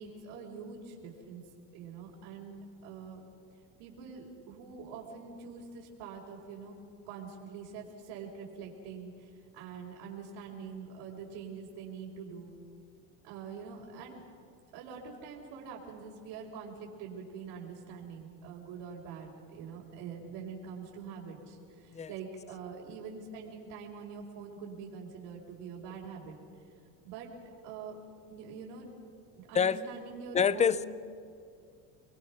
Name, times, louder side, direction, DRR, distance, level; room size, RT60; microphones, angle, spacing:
voice 1, 0.0-1.4 1.7-3.2 3.8-12.6 13.2-14.2 14.7-26.4 27.0-27.3 27.6-28.0 28.3-28.9 29.4-30.8, right 5 dB, 70° right, -5 dB, 4.5 m, -45 dB
voice 2, 30.3-30.8, left 7 dB, 15° left, 17 dB, 0.5 m, -26 dB
29.5 x 22.0 x 5.9 m, 2.4 s
supercardioid pair, 125°, 46 cm